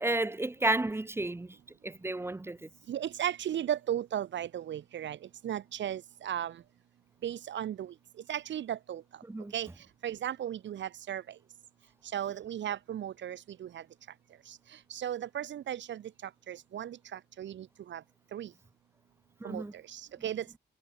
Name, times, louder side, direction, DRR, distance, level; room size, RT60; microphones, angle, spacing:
voice 1, 0.0-1.6 1.8-2.7 9.3-9.5 19.4-19.7, right 2 dB, 15° right, 0.6 m, -32 dB
voice 2, 2.9-5.2 5.4-6.6 7.2-7.9 8.3-9.0 9.5-9.7 10.0-11.2 12.0-13.8 14.5-14.6 14.9-18.0 18.3-18.5 19.4-20.5, right 10 dB, 80° right, 0.8 m, -36 dB
cardioid pair, 90°, 18 cm